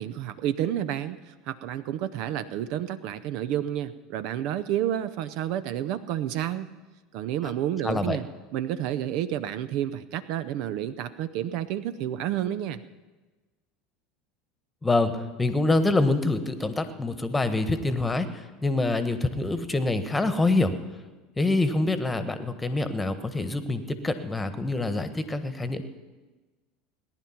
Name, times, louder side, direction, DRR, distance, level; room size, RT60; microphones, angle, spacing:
voice 1, 0.0-6.7 7.1-8.3 8.5-12.8, right 11 dB, 55° right, 14 dB, 0.5 m, -30 dB
voice 2, 7.8-8.2 14.8-18.3 18.6-20.7 21.4-25.8, left 2 dB, 15° left, 10 dB, 1.4 m, -25 dB
18.5 x 10.5 x 5.8 m, 1.2 s
figure-of-eight pair, 75°, 0 cm